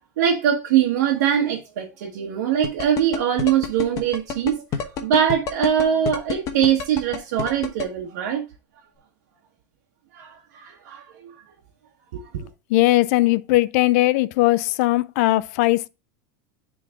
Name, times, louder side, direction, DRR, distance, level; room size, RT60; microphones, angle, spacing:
voice 1, 0.2-8.4 10.1-11.3 12.1-12.5, right 9 dB, 80° right, 1.4 m, -22 dB
sound 1, 2.6-7.8, left 6 dB, 35° left, 1.1 m, -27 dB
voice 2, 12.7-15.9, left 18 dB, 60° left, 0.4 m, -19 dB
9.8 x 3.9 x 3.7 m
supercardioid pair, 150°, 9 cm